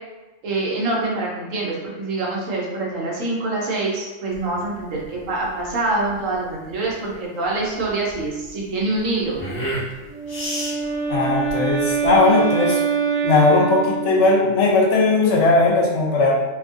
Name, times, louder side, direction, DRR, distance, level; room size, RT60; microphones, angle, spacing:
voice 1, 0.4-9.4, right 2 dB, 85° right, -3 dB, 1.1 m, -25 dB
sound 1, 4.3-12.3, right 1 dB, 15° left, 1.1 m, -33 dB
Wind instrument woodwind instrument, 10.0-14.6, right 6 dB, 45° right, 0.6 m, -24 dB
voice 2, 11.1-12.8 13.2-16.4, left 3 dB, 70° left, -2 dB, 0.9 m, -17 dB
2.8 x 2.5 x 2.4 m, 1.1 s
omnidirectional pair, 1.3 m